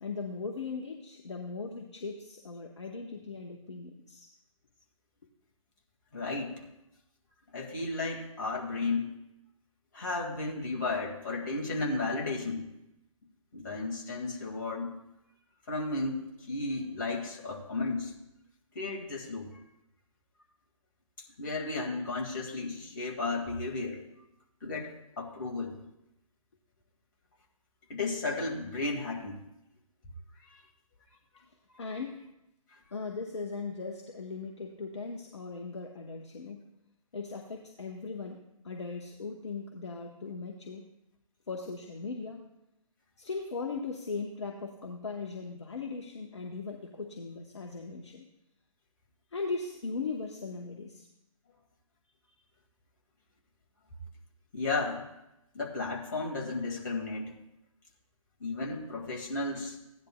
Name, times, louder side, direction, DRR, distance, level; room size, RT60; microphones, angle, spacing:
voice 1, 0.0-4.3 31.8-32.2 32.9-36.6 37.1-40.8 41.5-42.4 43.2-48.2 49.3-51.1, left 4 dB, 50° left, 2 dB, 1.0 m, -38 dB
voice 2, 6.1-6.7 7.5-9.1 9.9-12.7 13.5-15.0 15.7-18.1 18.8-19.5 21.4-24.0 24.6-25.8 27.9-29.5 30.5-30.6 54.5-55.0 55.5-57.4 58.4-59.8, left 3 dB, 35° left, -1 dB, 1.9 m, -34 dB
16.0 x 10.5 x 2.3 m, 0.87 s
figure-of-eight pair, 140°, 18 cm